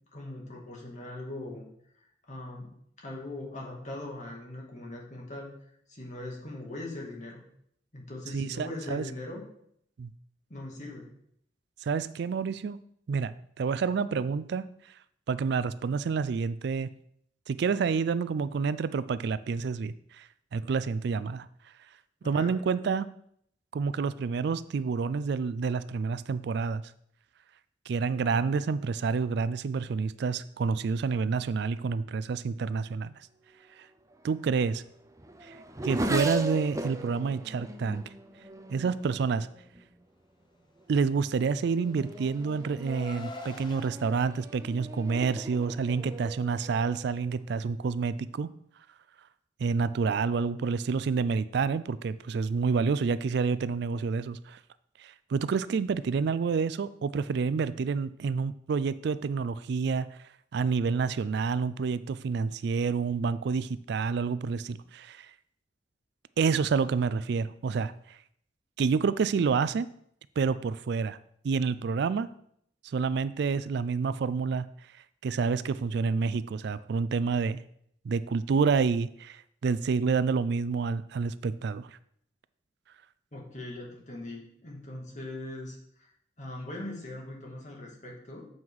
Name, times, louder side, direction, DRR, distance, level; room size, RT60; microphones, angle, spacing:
voice 1, 0.1-1.7 2.3-5.5 5.9-7.4 7.9-9.4 10.5-11.1 22.2-22.6 83.3-86.1 86.4-88.5, left 1 dB, 45° left, -1 dB, 2.1 m, -40 dB
voice 2, 8.3-9.1 10.0-10.1 11.8-12.8 13.1-14.7 15.3-16.9 17.5-21.5 22.2-23.1 23.7-26.8 27.9-33.3 33.8-33.9 34.2-34.8 35.4-35.6 35.8-38.0 38.7-39.5 40.9-48.5 49.6-54.6 55.0-60.2 60.5-65.3 66.4-68.2 68.8-69.9 70.4-71.2 71.4-72.3 72.8-74.7 75.2-77.6 78.0-81.9, right 5 dB, 65° right, 15 dB, 0.4 m, -28 dB
Race car auto racing / Accelerating revving vroom, 34.1-40.0 40.8-41.2 41.6-47.5, right 1 dB, 20° right, 0.6 m, -38 dB
Car, 41.4-43.9, left 3 dB, 25° left, 0.8 m, -46 dB
7.7 x 5.5 x 4.7 m, 0.69 s
head